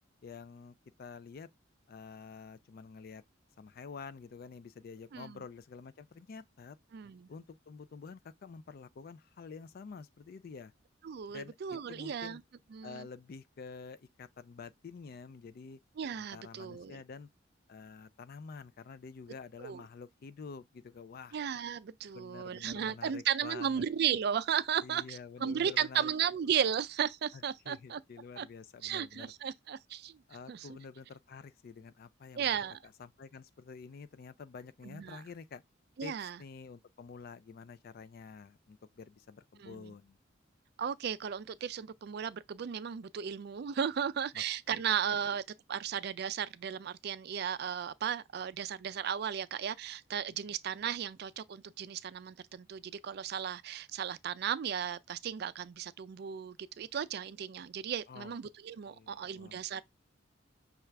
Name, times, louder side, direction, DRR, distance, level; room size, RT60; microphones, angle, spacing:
voice 1, 0.2-1.5 1.9-3.2 3.6-6.8 7.3-10.7 11.3-12.4 12.8-15.8 16.2-17.3 17.7-21.4 22.1-23.8 24.8-26.1 27.3-29.3 30.3-32.5 32.8-35.6 36.0-40.2 44.3-44.4 44.8-44.9 58.1-58.4 58.9-59.8, left 5 dB, 50° left, 0.4 m, -49 dB
voice 2, 5.1-5.4 6.9-7.3 11.0-12.4 12.7-13.1 16.0-17.0 19.6-19.8 21.3-28.0 28.4-28.5 28.8-30.2 30.5-30.8 32.4-32.8 34.8-35.2 36.0-36.4 39.6-39.9 40.8-45.4 45.7-59.8, right 8 dB, 55° right, 0.4 m, -35 dB
5.8 x 2.4 x 3.3 m
head